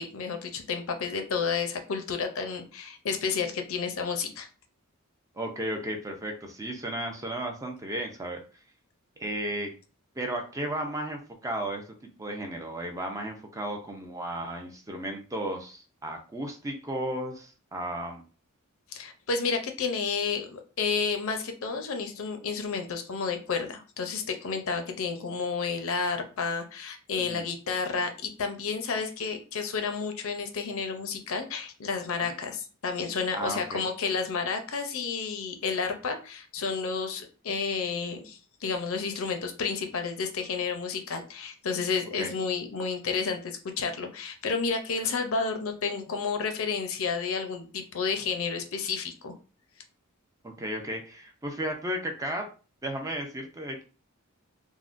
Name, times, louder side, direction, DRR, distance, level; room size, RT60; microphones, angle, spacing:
voice 1, 0.0-4.5 18.9-49.3, left 5 dB, 65° left, 5 dB, 0.6 m, -31 dB
voice 2, 5.3-8.4 9.2-9.7 10.2-11.8 12.2-18.2 27.2-27.5 32.2-32.3 33.3-33.8 42.2-42.3 50.4-52.4 52.8-53.8, right 1 dB, 15° right, 3 dB, 0.4 m, -34 dB
3.5 x 2.1 x 2.5 m, 0.36 s
head